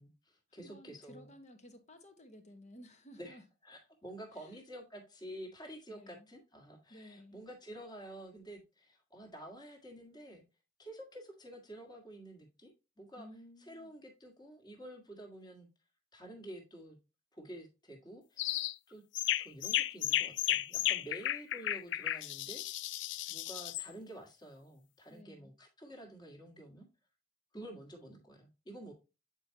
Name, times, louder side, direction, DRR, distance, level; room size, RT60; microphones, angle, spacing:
voice 1, 0.0-1.3 3.2-10.4 10.8-13.3 13.6-15.7 16.1-17.0 17.3-19.0 19.3-22.6 23.3-26.9 27.5-28.9, right 1 dB, 25° left, 1.7 m, -50 dB
voice 2, 0.5-3.4 4.3-4.6 5.9-6.3 6.9-7.4 13.2-13.9 25.1-25.5, equal, 40° left, 1.1 m, -55 dB
sound 1, 18.4-18.7 19.1-23.9, left 13 dB, 70° left, 0.3 m, -34 dB
8.4 x 4.6 x 2.8 m
head